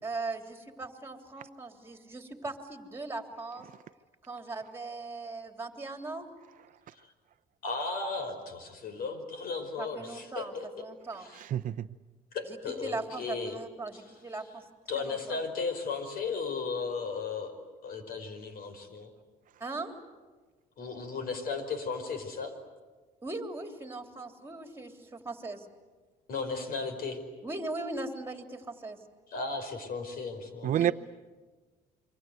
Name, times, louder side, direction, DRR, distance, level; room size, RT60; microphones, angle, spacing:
voice 1, 0.0-3.7 4.3-6.3 9.8-11.3 12.5-12.6 12.8-14.6 14.9-15.4 19.6-19.9 23.2-25.6 27.4-29.0 30.7-30.9, right 3 dB, 15° right, 3.3 m, -39 dB
voice 2, 7.6-10.8 11.2-11.4 12.3-13.6 13.9-14.0 14.9-17.5 17.8-19.1 20.8-22.5 26.3-27.2 29.3-30.9, left 4 dB, 60° left, 5.2 m, -35 dB
voice 3, 11.4-11.9 30.6-30.9, right 11 dB, 50° right, 0.8 m, -28 dB
28.0 x 24.5 x 8.2 m
cardioid pair, 110°, 17 cm